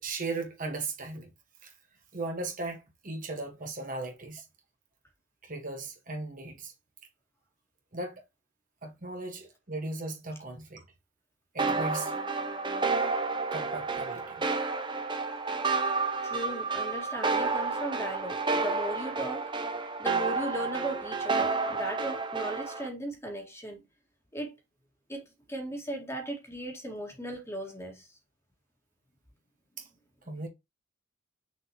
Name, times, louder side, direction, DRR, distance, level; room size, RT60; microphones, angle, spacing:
voice 1, 0.0-1.3 1.6-1.7 2.1-4.5 5.4-6.7 7.9-8.2 8.8-10.8 11.5-12.1 13.5-14.5 29.8-29.9 30.3-30.5, right 3 dB, 40° right, 1.7 m, -37 dB
sound 1, 11.6-22.9, right 4 dB, 25° right, 0.9 m, -30 dB
voice 2, 16.2-19.5 20.0-23.8 24.3-24.5 25.1-25.2 25.5-28.1, right 1 dB, 15° left, 2.2 m, -37 dB
6.4 x 5.2 x 3.1 m
head